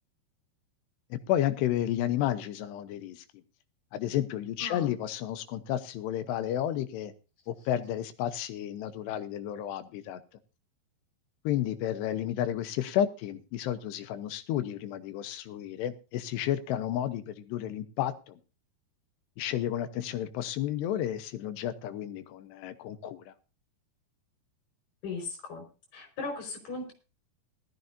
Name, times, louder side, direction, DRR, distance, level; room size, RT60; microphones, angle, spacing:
voice 1, 1.3-3.2 3.9-7.1 7.5-10.2 11.4-18.4 19.4-23.3, left 11 dB, 80° left, 11 dB, 3.0 m, -32 dB
voice 2, 4.6-4.9 25.0-25.6 25.9-26.9, left 3 dB, 55° left, 5 dB, 6.5 m, -37 dB
18.5 x 13.5 x 2.7 m, 0.32 s
omnidirectional pair, 4.8 m